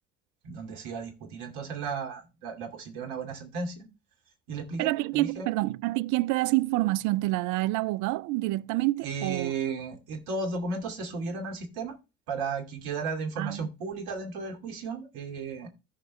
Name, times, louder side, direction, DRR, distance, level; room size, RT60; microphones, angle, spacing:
voice 1, 0.4-3.9 4.5-5.5 9.0-12.0 12.3-15.7, right 4 dB, 65° right, 2.6 m, -34 dB
voice 2, 4.8-9.5 13.4-13.7, right 19 dB, 50° right, 0.5 m, -27 dB
15.0 x 5.2 x 3.3 m
figure-of-eight pair, 55°, 41 cm